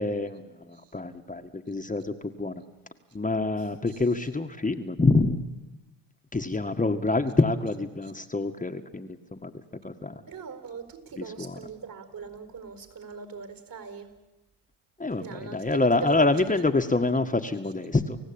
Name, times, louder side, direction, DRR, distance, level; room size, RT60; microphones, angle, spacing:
voice 1, 0.0-2.0 2.4-2.6 3.1-5.4 6.3-9.5 9.8-10.1 11.2-11.6 15.0-18.2, left 3 dB, 15° left, 6 dB, 1.7 m, -26 dB
voice 2, 3.6-4.0 8.0-8.1 10.3-14.1 15.2-16.6 16.9-17.0, right 6 dB, 45° right, 9 dB, 4.7 m, -41 dB
30.0 x 16.0 x 8.9 m, 1.1 s
supercardioid pair, 70°, 46 cm